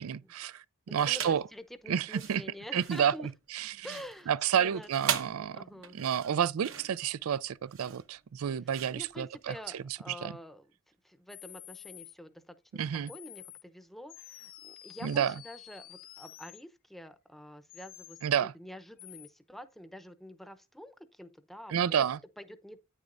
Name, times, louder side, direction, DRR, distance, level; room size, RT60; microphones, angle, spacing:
voice 1, 0.0-1.4 1.9-2.4 2.7-3.1 3.5-3.9 4.3-5.6 5.9-10.3 12.7-13.1 15.0-15.3 18.2-18.5 21.7-22.2, right 8 dB, 90° right, 0.4 m, -30 dB
voice 2, 0.9-3.3 3.8-4.3 4.6-5.2 5.5-6.0 8.9-10.7 11.0-12.8 13.1-22.0 22.4-22.9, equal, ahead, 0.7 m, -47 dB
sound 1, 1.0-1.5 2.0-9.8, right 8 dB, 65° right, 1.0 m, -39 dB
sound 2, 11.3-12.1 13.1-13.6 14.1-16.6 17.7-18.3 19.0-19.3, left 15 dB, 45° left, 0.4 m, -50 dB
9.6 x 9.2 x 2.6 m
head